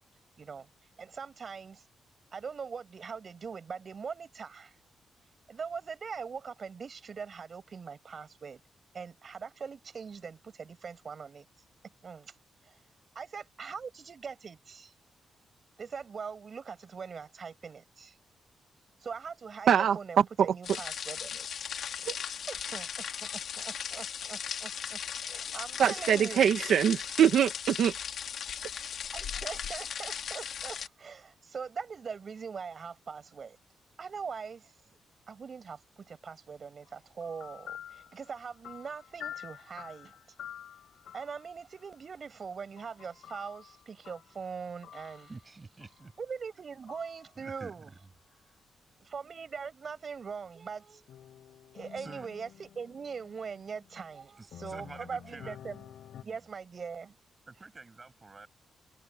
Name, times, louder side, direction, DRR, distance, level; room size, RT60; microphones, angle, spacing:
voice 1, 0.4-0.7 1.0-1.8 2.3-4.8 5.5-8.6 8.9-11.4 12.0-12.3 12.7-12.8 13.1-14.9 15.8-18.1 19.0-21.5 22.5-26.5 29.1-33.6 34.0-34.7 35.3-40.2 41.1-45.3 46.2-47.9 49.1-51.1 51.7-55.9 56.2-57.2, right 6 dB, 35° right, 7.9 m, -42 dB
voice 2, 19.7-20.5 22.0-22.3 25.8-27.9, right 9 dB, 70° right, 1.5 m, -24 dB
sound 1, 20.6-30.9, left 8 dB, 65° left, 2.0 m, -37 dB
sound 2, 36.8-41.5 42.8-44.5 44.8-45.4 45.8-46.2 46.9-47.3 51.1-54.2 54.5-56.2, left 10 dB, 85° left, 7.5 m, -49 dB
voice 3, 45.3-46.1 47.4-48.1 52.0-52.3 54.4-55.6 56.2-56.4 57.5-58.5, right 3 dB, 20° right, 7.6 m, -48 dB
wide cardioid pair, 165°, 0 cm